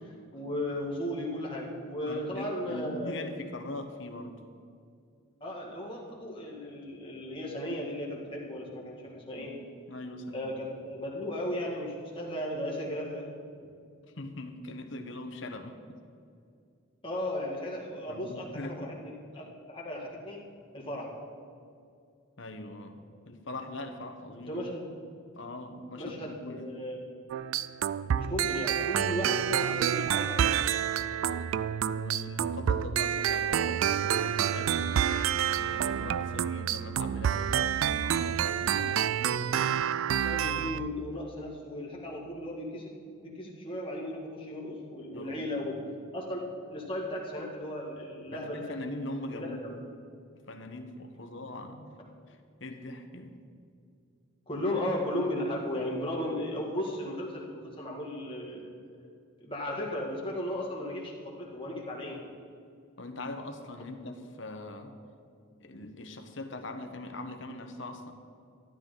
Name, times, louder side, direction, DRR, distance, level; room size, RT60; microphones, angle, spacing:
voice 1, 0.0-3.2 5.4-9.5 10.3-13.3 17.0-20.4 20.7-21.1 24.5-24.9 26.0-27.0 28.0-30.6 40.2-42.9 43.2-45.8 46.1-46.4 46.7-48.7 49.3-49.7 54.5-58.7 59.0-59.1 59.4-62.2, left 1 dB, 25° left, -3 dB, 2.0 m, -35 dB
voice 2, 2.1-4.4 9.3-10.5 14.2-16.0 18.1-18.9 22.4-24.6 25.3-26.7 31.8-34.8 35.5-39.4 45.1-45.9 48.3-49.8 50.5-52.0 52.3-53.4 54.5-54.6 63.0-65.0 65.6-68.1, left 2 dB, 60° left, 5 dB, 1.1 m, -41 dB
sound 1, 27.3-40.9, right 9 dB, 75° right, 0.3 m, -28 dB
13.5 x 12.0 x 4.0 m, 2.4 s
head